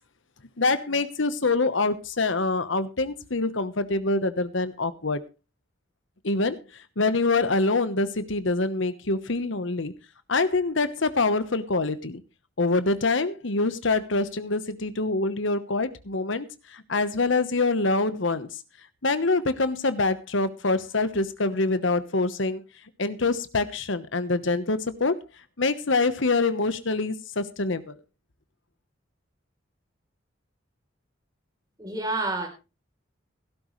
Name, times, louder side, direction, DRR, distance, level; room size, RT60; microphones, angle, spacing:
voice 1, 0.6-5.2 6.2-9.9 10.3-12.2 12.6-18.6 19.0-22.6 23.0-25.1 25.6-27.9, left 3 dB, 75° left, 1.1 m, -25 dB
voice 2, 31.8-32.5, right 2 dB, 20° right, 3.6 m, -28 dB
16.5 x 12.5 x 3.2 m
head